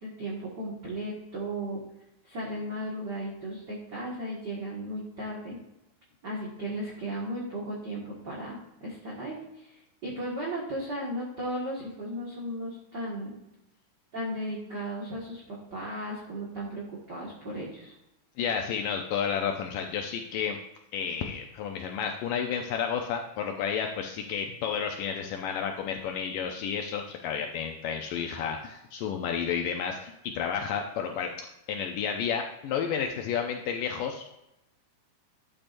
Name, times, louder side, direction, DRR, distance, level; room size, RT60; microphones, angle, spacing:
voice 1, 0.0-1.8 2.2-5.6 6.2-13.4 14.1-17.9, right 1 dB, 50° right, -5 dB, 1.2 m, -36 dB
voice 2, 18.4-20.6 20.9-34.3, left 7 dB, 85° left, 3 dB, 1.9 m, -31 dB
12.5 x 8.5 x 2.6 m, 0.88 s
omnidirectional pair, 4.7 m